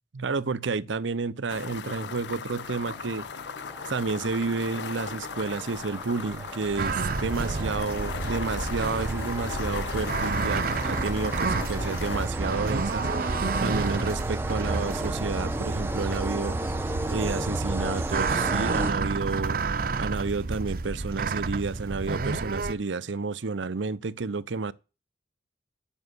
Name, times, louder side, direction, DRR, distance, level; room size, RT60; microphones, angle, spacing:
voice 1, 0.1-3.3 3.8-13.3 13.6-16.7 17.1-24.7, right 4 dB, 85° right, 0.7 m, -31 dB
sound 1, 1.5-12.3, left 6 dB, 70° left, 0.5 m, -37 dB
sound 2, 2.6-19.4, right 1 dB, 15° right, 0.5 m, -36 dB
sound 3, 6.8-22.7, right 3 dB, 50° right, 0.7 m, -30 dB
9.1 x 7.2 x 8.0 m
head